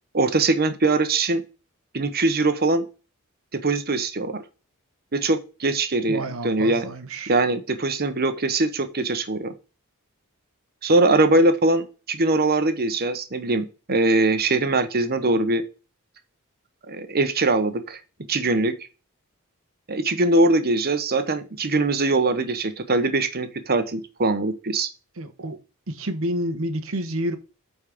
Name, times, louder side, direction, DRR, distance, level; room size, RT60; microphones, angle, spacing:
voice 1, 0.1-1.4 1.9-2.8 3.5-4.4 5.1-6.9 7.3-9.5 10.8-15.6 16.9-18.0 18.3-18.7 19.9-24.9, right 2 dB, 45° right, 1.1 m, -22 dB
voice 2, 6.1-7.4 25.2-25.6 25.9-27.4, right 1 dB, 65° right, 1.2 m, -29 dB
8.5 x 4.3 x 5.1 m
head